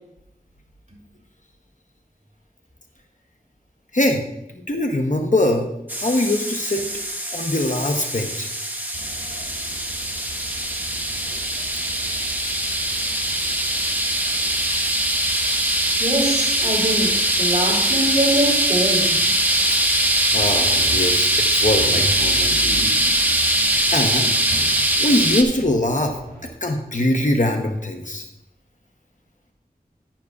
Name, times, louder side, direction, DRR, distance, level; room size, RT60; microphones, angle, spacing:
voice 1, 4.7-5.7 6.0-6.8 7.3-8.5 20.3-22.9 23.9-24.3 25.0-26.2 26.6-28.2, left 1 dB, 55° left, 3 dB, 0.9 m, -22 dB
sound 1, 5.9-25.4, right 1 dB, 10° right, 1.0 m, -21 dB
sound 2, 8.9-26.5, right 1 dB, 80° right, 2.7 m, -37 dB
voice 2, 16.0-19.3, right 1 dB, 55° right, -3 dB, 3.4 m, -23 dB
10.5 x 10.0 x 2.4 m, 0.85 s
wide cardioid pair, 50°, 16 cm